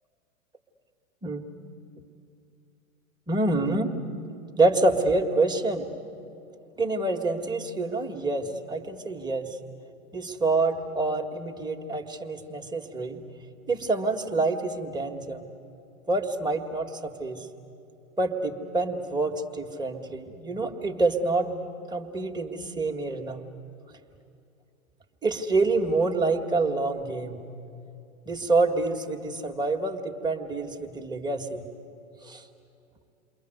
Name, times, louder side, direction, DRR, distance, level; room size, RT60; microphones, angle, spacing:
voice 1, 1.2-1.5 3.3-3.9 4.6-5.9 6.8-9.6 10.1-13.2 13.7-15.4 16.1-17.5 18.2-21.5 21.9-23.4 25.2-27.4 28.3-31.6 32.2-32.4, right 3 dB, 10° right, 2 dB, 1.8 m, -27 dB
28.5 x 23.0 x 7.9 m, 2.7 s
hypercardioid pair, 100°, 40 cm